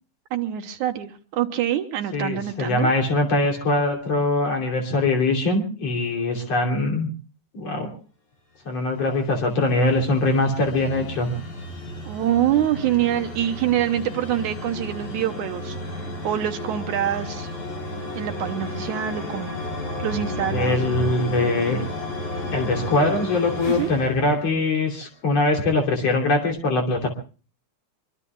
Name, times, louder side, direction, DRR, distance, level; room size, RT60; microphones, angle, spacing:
voice 1, 0.3-2.9 12.1-17.5 18.1-19.5 20.0-20.7 23.7-23.9, right 11 dB, 75° right, 6 dB, 2.5 m, -25 dB
voice 2, 2.1-7.1 7.5-7.9 8.7-11.3 20.5-21.8 22.5-27.1, left 2 dB, 55° left, 2 dB, 4.1 m, -22 dB
sound 1, 8.9-25.1, left 1 dB, 75° left, 5.6 m, -33 dB
25.5 x 24.0 x 2.3 m, 0.38 s
omnidirectional pair, 3.5 m